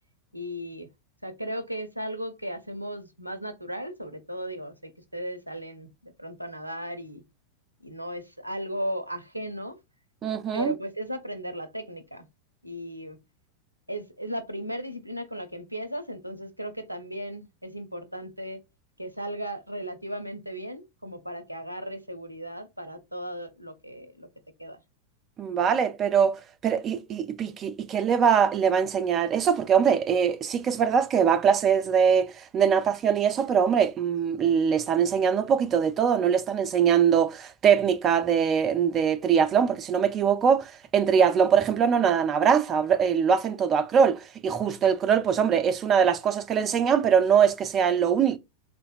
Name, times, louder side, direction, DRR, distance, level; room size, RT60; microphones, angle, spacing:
voice 1, 0.3-0.9 1.2-7.2 7.8-9.8 10.5-12.3 12.6-13.2 13.9-18.6 19.0-24.3 24.6-24.8 44.9-45.0, equal, 85° right, 0.5 m, -36 dB
voice 2, 10.2-10.7 25.4-48.4, right 7 dB, 25° right, 0.4 m, -22 dB
3.4 x 2.5 x 2.2 m
figure-of-eight pair, 90°, 0 cm